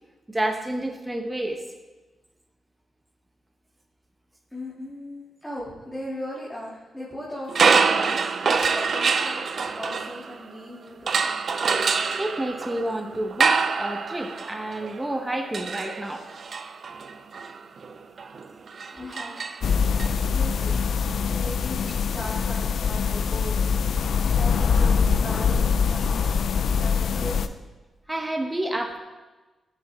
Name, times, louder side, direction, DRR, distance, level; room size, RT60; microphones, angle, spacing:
voice 1, 0.3-1.6 12.2-16.2 26.0-26.1 28.1-29.0, right 1 dB, 15° right, 4 dB, 0.9 m, -29 dB
voice 2, 4.5-11.6 18.9-19.4 20.3-23.6 24.4-26.1 26.8-27.5, left 1 dB, 5° left, -7 dB, 2.4 m, -38 dB
sound 1, 7.5-10.6 11.1-20.1, right 5 dB, 55° right, 0.5 m, -26 dB
sound 2, 19.6-27.5, left 6 dB, 70° left, 0.4 m, -23 dB
13.5 x 6.8 x 3.6 m, 1.2 s
cardioid pair, 90°, 0 cm